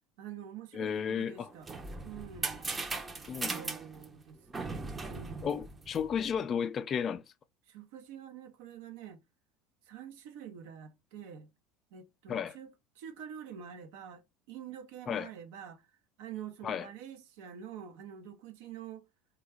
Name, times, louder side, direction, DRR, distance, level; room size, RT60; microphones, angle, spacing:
voice 1, 0.2-1.7 2.0-2.7 3.5-5.6 7.7-9.2 9.9-11.5 11.9-15.9 16.2-19.1, right 8 dB, 75° right, 0.7 m, -47 dB
voice 2, 0.7-1.5 3.3-3.6 5.4-7.2 12.3-12.6 15.1-15.3 16.6-16.9, left 7 dB, 40° left, 0.4 m, -33 dB
sound 1, 1.3-6.4, right 3 dB, 20° right, 0.6 m, -39 dB
3.3 x 2.3 x 3.2 m
hypercardioid pair, 85°, 0 cm